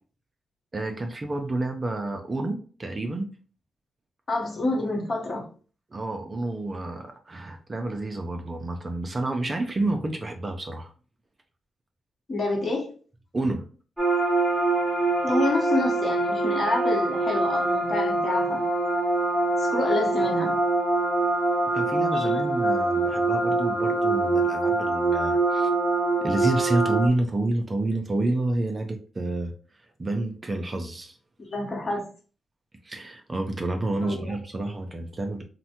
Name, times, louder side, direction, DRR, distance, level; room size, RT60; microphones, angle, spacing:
voice 1, 0.7-3.3 5.9-10.9 13.3-13.6 21.7-25.7 26.2-29.5 29.8-31.2 32.8-35.4, right 2 dB, 25° right, 0.4 m, -29 dB
voice 2, 4.3-5.5 12.3-12.9 15.2-18.6 19.6-20.6 22.1-22.4 31.4-32.1 34.0-34.4, left 2 dB, 40° left, 0.9 m, -28 dB
sound 1, 14.0-27.1, right 2 dB, ahead, 0.8 m, -24 dB
3.2 x 2.1 x 2.8 m
cardioid pair, 115°, 0 cm